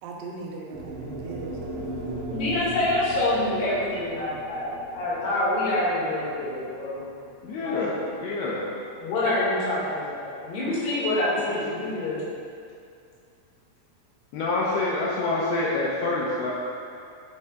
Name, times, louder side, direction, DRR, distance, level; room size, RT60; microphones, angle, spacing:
voice 1, 0.0-1.9, right 3 dB, 85° right, -2 dB, 3.2 m, -39 dB
sound 1, 0.7-9.0, right 1 dB, 70° right, 3.0 m, -38 dB
voice 2, 2.3-7.0 7.6-7.9 9.0-12.2, left 1 dB, 65° left, -9 dB, 3.8 m, -26 dB
voice 3, 7.4-8.6 14.3-16.5, left 2 dB, 80° left, -5 dB, 2.6 m, -27 dB
9.8 x 6.5 x 2.4 m, 2.4 s
omnidirectional pair, 5.5 m